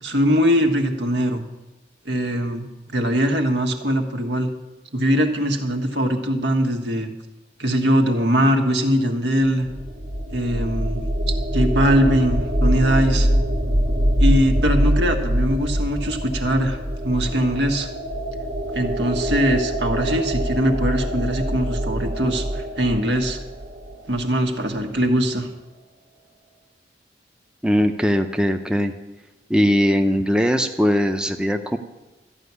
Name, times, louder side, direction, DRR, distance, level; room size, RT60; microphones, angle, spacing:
voice 1, 0.0-1.4 2.0-4.5 4.9-7.1 7.6-9.7 10.3-11.0 11.5-13.3 14.2-17.9 18.7-23.4 24.1-25.5, equal, 80° right, 5 dB, 1.5 m, -21 dB
sound 1, 9.5-24.3, equal, 55° right, 1.1 m, -24 dB
voice 2, 27.6-28.9 29.5-31.8, equal, 5° right, 5 dB, 0.6 m, -20 dB
13.5 x 6.0 x 9.6 m, 1.1 s
head